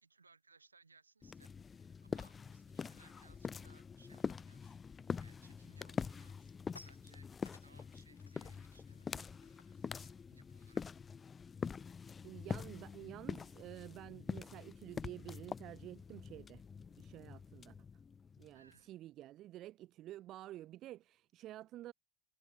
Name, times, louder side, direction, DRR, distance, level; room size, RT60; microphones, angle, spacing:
voice 1, 0.0-7.3 7.6-10.8 18.5-18.9, right 4 dB, 85° right, 3.9 m, -67 dB
sound 1, 1.2-18.7, left 6 dB, 25° left, 0.6 m, -45 dB
sound 2, 6.4-11.9 12.2-12.4 12.7-17.7, left 3 dB, 85° left, 4.3 m, -66 dB
voice 2, 12.2-16.6 17.0-17.8 18.4-21.9, right 14 dB, 45° right, 0.9 m, -50 dB
figure-of-eight pair, 70°, 0 cm